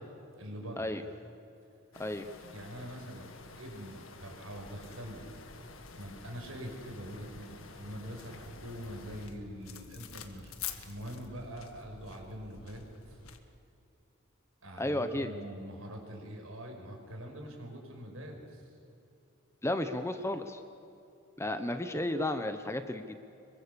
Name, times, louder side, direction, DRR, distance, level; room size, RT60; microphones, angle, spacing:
voice 1, 0.4-0.9 2.5-3.3 3.6-5.2 6.0-10.5 10.8-13.2 14.6-18.6, equal, 75° right, 2 dB, 5.5 m, -44 dB
sound 1, 1.9-9.3, left 3 dB, 65° left, 1.9 m, -51 dB
sound 2, 4.5-13.4, left 7 dB, 85° left, 1.7 m, -49 dB
voice 2, 14.8-15.3 19.6-20.6 21.4-23.2, left 1 dB, 15° left, 8 dB, 1.0 m, -33 dB
26.5 x 23.5 x 7.0 m, 2.8 s
head